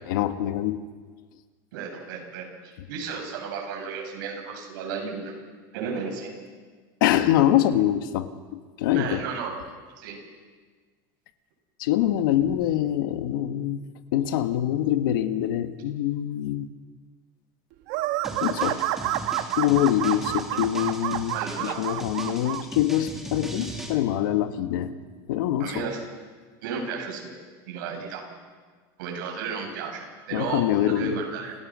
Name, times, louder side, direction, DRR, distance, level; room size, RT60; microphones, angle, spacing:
voice 1, 0.1-0.8 7.0-9.2 11.8-13.8 14.1-16.7 18.4-18.8 19.6-21.4 21.6-24.9 25.3-25.9 30.3-31.2, left 12 dB, 85° left, 8 dB, 1.6 m, -24 dB
voice 2, 1.7-5.3 5.7-6.3 8.9-9.6 10.0-10.2 21.3-21.8 25.6-26.0 26.6-27.4 27.7-28.2 29.0-31.5, right 5 dB, 80° right, 1 dB, 7.6 m, -33 dB
sound 1, 17.9-22.6, right 14 dB, 55° right, 1.2 m, -29 dB
sound 2, 18.2-23.9, right 1 dB, 5° right, 2.5 m, -39 dB
28.5 x 17.5 x 6.3 m, 1.5 s
cardioid pair, 175°, 11 cm